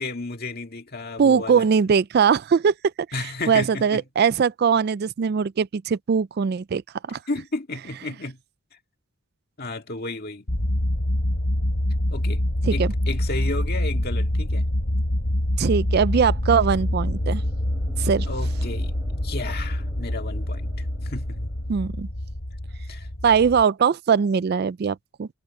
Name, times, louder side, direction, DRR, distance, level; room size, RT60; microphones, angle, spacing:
voice 1, 0.0-1.7 3.1-4.0 7.3-8.4 9.6-10.5 12.1-12.4 12.7-14.7 18.3-18.9 19.2-21.5 22.9-23.1, left 2 dB, 45° left, 2.0 m, -33 dB
voice 2, 1.2-2.7 3.5-6.8 7.1-7.2 12.6-12.9 15.6-17.4 18.0-18.3 21.7-22.1 23.2-25.3, right 6 dB, 45° right, 0.3 m, -21 dB
sound 1, 10.5-23.6, left 1 dB, 90° left, 3.0 m, -25 dB
sound 2, 15.8-21.9, equal, 20° right, 5.7 m, -46 dB
head